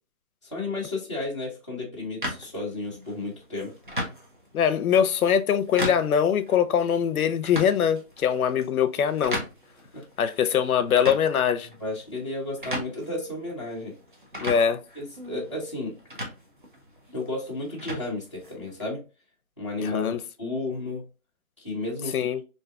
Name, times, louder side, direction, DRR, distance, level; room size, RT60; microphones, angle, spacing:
voice 1, 0.4-3.7 9.9-10.0 11.6-14.0 15.0-16.0 17.1-19.0 19.6-21.0 21.6-22.3, left 2 dB, 20° left, 0.6 m, -33 dB
sound 1, 2.2-18.9, equal, 40° right, 0.4 m, -38 dB
voice 2, 4.5-9.4 10.2-11.7 14.4-14.8 19.8-20.2 22.1-22.4, left 8 dB, 85° left, 0.6 m, -23 dB
2.6 x 2.4 x 3.3 m
hypercardioid pair, 175°, 42 cm